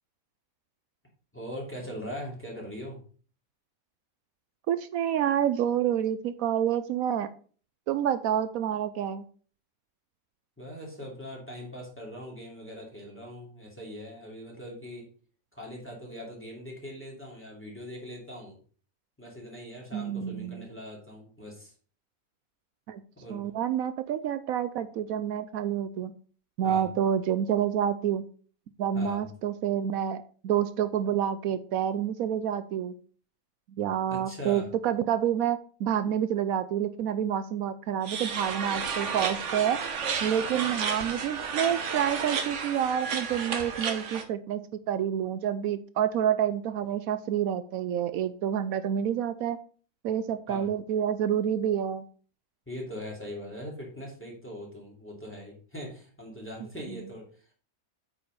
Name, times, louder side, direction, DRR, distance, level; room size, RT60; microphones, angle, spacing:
voice 1, 1.3-3.0 10.6-15.1 15.5-18.6 19.2-21.7 23.2-23.4 26.6-26.9 28.9-29.3 34.1-34.7 50.5-50.7 52.7-57.5, equal, 10° left, -3 dB, 2.8 m, -41 dB
voice 2, 4.7-7.3 7.9-9.2 19.9-20.7 22.9-23.0 23.3-26.1 26.6-28.2 28.8-32.9 33.8-39.8 40.2-44.6 44.9-49.6 50.0-52.0, right 9 dB, 80° right, 12 dB, 1.0 m, -28 dB
sound 1, 38.0-44.2, right 6 dB, 60° right, 1.3 m, -32 dB
8.6 x 4.9 x 5.2 m, 0.42 s
omnidirectional pair, 1.5 m